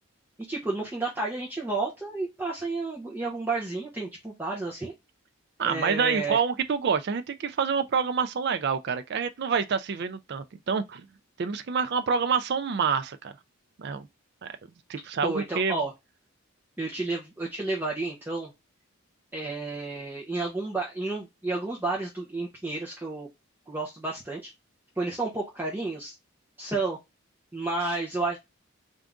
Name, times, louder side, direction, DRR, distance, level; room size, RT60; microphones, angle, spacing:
voice 1, 0.5-4.9 5.6-6.4 15.2-15.9 16.8-18.5 19.3-23.3 23.7-24.5 25.0-26.1 26.6-27.0 27.5-28.4, right 3 dB, 10° right, 0.9 m, -31 dB
voice 2, 5.6-11.1 11.4-13.3 13.8-14.1 14.4-14.5 14.9-15.8, right 6 dB, 50° right, 0.4 m, -27 dB
3.5 x 2.6 x 3.6 m
head